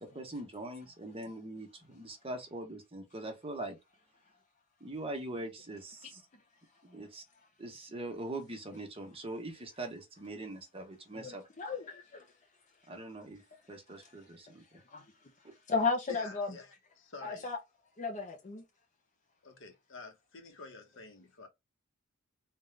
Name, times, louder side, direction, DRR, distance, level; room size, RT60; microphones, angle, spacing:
voice 1, 0.0-3.8 4.8-6.2 6.8-7.2 7.6-11.4 12.9-13.4 13.7-14.8, right 2 dB, 25° right, 1.1 m, -42 dB
voice 2, 11.1-12.3 14.7-15.0 15.7-16.5 17.2-17.6 18.0-18.6, left 4 dB, 35° left, 0.6 m, -34 dB
voice 3, 16.1-17.5 19.4-21.5, left 4 dB, 60° left, 1.1 m, -49 dB
3.8 x 2.5 x 3.2 m
head